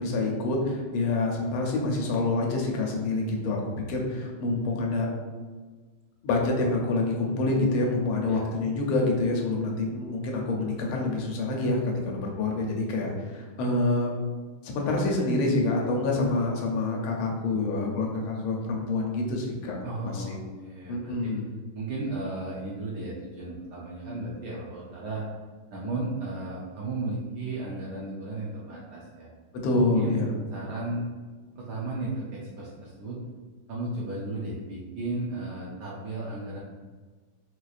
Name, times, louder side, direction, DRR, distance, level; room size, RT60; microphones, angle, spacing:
voice 1, 0.0-3.6 3.9-5.1 6.2-14.1 14.6-19.8 20.0-20.4 20.9-21.5 29.5-30.3, left 2 dB, 85° left, 0 dB, 1.5 m, -27 dB
voice 2, 19.8-21.3 21.7-25.4 25.7-29.3 29.7-30.1 30.5-31.0 31.6-33.2 33.7-36.6, right 2 dB, 70° right, -5 dB, 1.0 m, -34 dB
4.3 x 2.4 x 2.4 m, 1.4 s
omnidirectional pair, 2.3 m